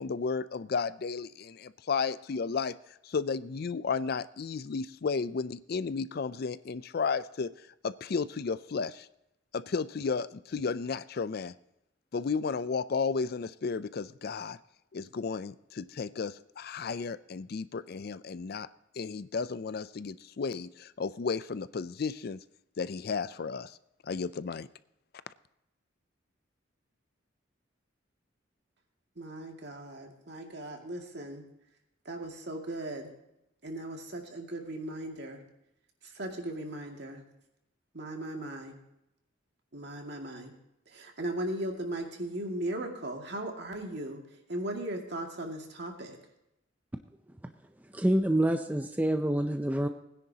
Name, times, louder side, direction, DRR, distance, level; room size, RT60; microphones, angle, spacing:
voice 1, 0.0-2.7 3.0-7.5 7.8-9.1 9.5-11.5 12.1-14.6 14.9-18.7 19.0-22.4 22.8-23.7 24.0-24.7, left 5 dB, 55° left, 15 dB, 0.4 m, -33 dB
voice 2, 29.2-31.4 32.1-33.1 33.6-35.4 36.0-37.2 37.9-38.8 39.7-40.5 40.9-44.2 44.5-46.2, right 1 dB, 60° right, 2 dB, 2.2 m, -37 dB
voice 3, 47.9-49.9, right 1 dB, 10° right, 6 dB, 0.5 m, -27 dB
20.0 x 10.0 x 2.9 m, 0.85 s
head